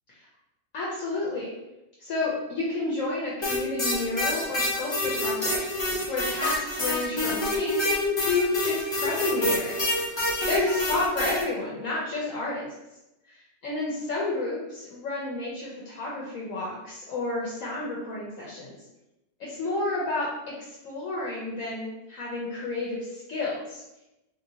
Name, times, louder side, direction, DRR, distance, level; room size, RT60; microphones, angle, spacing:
voice 1, 0.7-1.5 2.0-9.9 10.5-12.7 13.3-18.7 19.4-23.8, left 2 dB, 65° left, -5 dB, 1.0 m, -30 dB
sound 1, 3.4-11.4, left 1 dB, 45° left, 0.3 m, -27 dB
3.4 x 2.7 x 2.7 m, 0.94 s
omnidirectional pair, 1.6 m